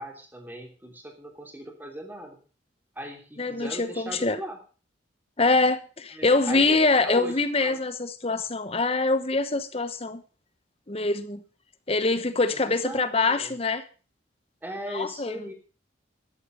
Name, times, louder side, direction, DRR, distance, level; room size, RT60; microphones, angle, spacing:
voice 1, 0.0-2.4 2.9-4.6 6.1-7.8 12.5-13.6 14.6-15.5, equal, 10° right, 3.1 m, -39 dB
voice 2, 3.4-4.4 5.4-10.2 10.9-11.4 11.9-13.8 14.9-15.4, left 3 dB, 30° left, 0.9 m, -24 dB
13.5 x 10.5 x 5.2 m
head